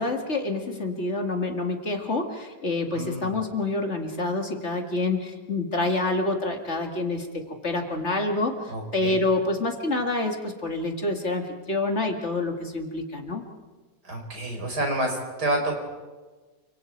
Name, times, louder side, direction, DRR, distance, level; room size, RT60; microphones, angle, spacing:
voice 1, 0.0-13.4, left 2 dB, 45° left, 4 dB, 2.4 m, -27 dB
voice 2, 2.9-3.3 8.7-9.2 14.0-15.7, right 1 dB, 75° right, 2 dB, 5.1 m, -28 dB
29.0 x 25.5 x 4.6 m, 1.3 s
omnidirectional pair, 1.8 m